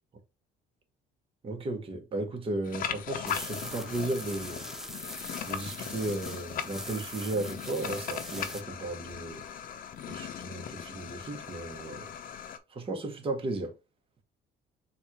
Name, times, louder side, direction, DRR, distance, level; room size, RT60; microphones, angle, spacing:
voice 1, 1.4-4.6 5.4-9.4 10.1-12.1 12.7-13.7, right 2 dB, 30° right, 1.2 m, -35 dB
sound 1, 2.6-12.6, left 8 dB, 55° left, 0.6 m, -39 dB
sound 2, 3.3-8.6, equal, ahead, 0.5 m, -42 dB
4.0 x 2.5 x 4.6 m
cardioid pair, 110°, 17 cm